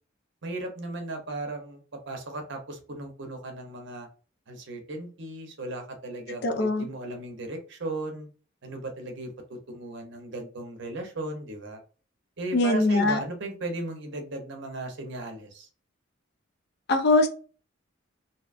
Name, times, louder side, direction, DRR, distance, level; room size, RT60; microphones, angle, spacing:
voice 1, 0.4-4.1 4.5-8.3 8.6-11.8 12.4-15.7, right 2 dB, 60° right, 4 dB, 0.7 m, -36 dB
voice 2, 6.4-6.9 12.5-13.2 16.9-17.3, left 2 dB, 55° left, 4 dB, 0.5 m, -22 dB
2.7 x 2.3 x 2.4 m, 0.38 s
head